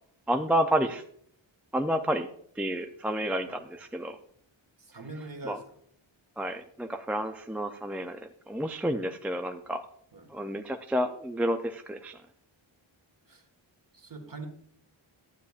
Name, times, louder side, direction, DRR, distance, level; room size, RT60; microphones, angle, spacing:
voice 1, 0.3-1.0 1.7-2.3 2.6-4.2 5.5-5.6 6.4-8.2 8.5-9.8 10.3-12.2, equal, 5° right, 6 dB, 0.3 m, -30 dB
voice 2, 4.8-5.6 10.1-10.3 13.3-13.4 13.9-14.5, right 3 dB, 45° right, 5 dB, 1.5 m, -42 dB
12.5 x 8.2 x 2.4 m, 0.64 s
wide cardioid pair, 95°, 47 cm